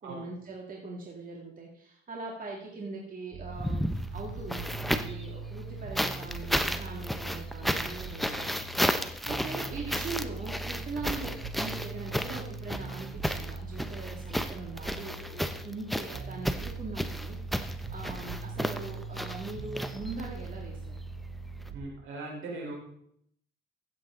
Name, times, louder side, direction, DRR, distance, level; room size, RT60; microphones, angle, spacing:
voice 1, 0.0-9.0 9.3-11.3 11.6-21.0, right 3 dB, 45° right, -1 dB, 2.2 m, -41 dB
sound 1, 3.3-21.8, right 3 dB, 65° right, 2.9 m, -41 dB
sound 2, 3.5-5.3 6.0-20.5 21.6-21.7, equal, ahead, 0.8 m, -33 dB
voice 2, 8.3-8.6 18.1-18.2 21.7-22.7, right 2 dB, 85° right, -2 dB, 3.8 m, -40 dB
15.0 x 7.6 x 3.8 m, 0.70 s
cardioid pair, 90°, 20 cm